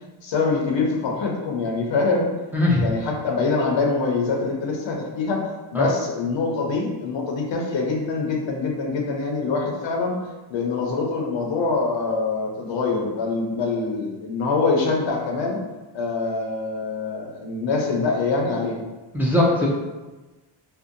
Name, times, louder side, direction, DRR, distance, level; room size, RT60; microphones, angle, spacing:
voice 1, 0.2-2.3 2.8-5.4 5.7-10.1 10.5-15.6 15.9-18.7, left 4 dB, 65° left, 0 dB, 0.7 m, -24 dB
voice 2, 2.5-2.9 5.7-5.9 19.1-19.7, left 1 dB, 5° right, -5 dB, 0.4 m, -19 dB
2.7 x 2.1 x 2.5 m, 1.1 s
cardioid pair, 85°, 48 cm